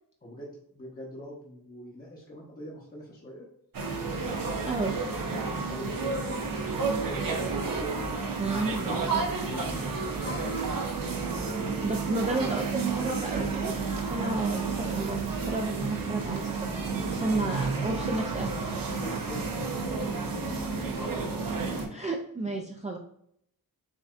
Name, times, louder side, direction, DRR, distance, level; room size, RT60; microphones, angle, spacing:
voice 1, 0.2-3.5 4.9-7.5 8.4-9.7 10.0-10.6 17.2-18.1 18.9-21.3 22.5-22.6, left 1 dB, 25° left, -4 dB, 0.9 m, -43 dB
sound 1, 3.7-21.9, right 4 dB, 65° right, 0.8 m, -31 dB
voice 2, 4.7-5.0 8.4-8.9 11.8-13.7 14.1-18.5 21.9-23.0, right 2 dB, 20° right, 1 dB, 0.4 m, -32 dB
7.3 x 2.6 x 2.4 m, 0.71 s
wide cardioid pair, 135°, 37 cm